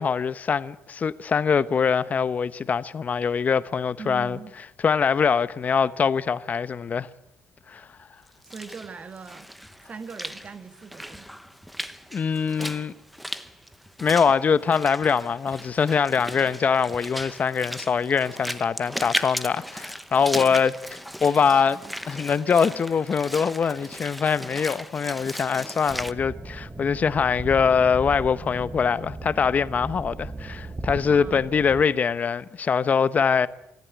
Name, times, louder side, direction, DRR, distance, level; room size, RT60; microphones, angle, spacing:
voice 1, 0.0-4.4 4.8-7.1 7.7-7.9 12.1-12.9 14.0-20.7 21.2-21.8 22.1-33.5, left 6 dB, 35° left, 0.9 m, -23 dB
voice 2, 4.0-4.5 8.5-9.5 9.9-11.3 20.3-20.6 21.7-21.9 31.1-31.5, right 5 dB, 35° right, 2.0 m, -40 dB
Walk footsteps / Splash splatter, 8.3-26.1, equal, ahead, 0.9 m, -37 dB
sound 1, 25.9-31.8, right 2 dB, 15° right, 1.3 m, -37 dB
25.0 x 13.5 x 9.3 m
cardioid pair, 120°, 4 cm